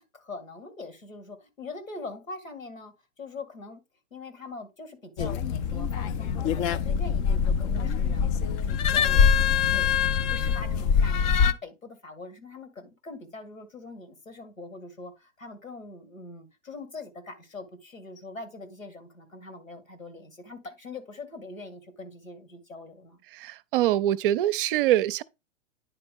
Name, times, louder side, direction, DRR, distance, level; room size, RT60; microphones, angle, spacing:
voice 1, 0.0-3.8 4.1-23.2, left 3 dB, 90° left, 2.2 m, -43 dB
sound 1, 5.2-11.5, left 7 dB, 25° left, 0.5 m, -24 dB
voice 2, 23.3-25.2, right 13 dB, 45° right, 0.6 m, -24 dB
9.7 x 4.3 x 3.7 m
figure-of-eight pair, 105°, 39 cm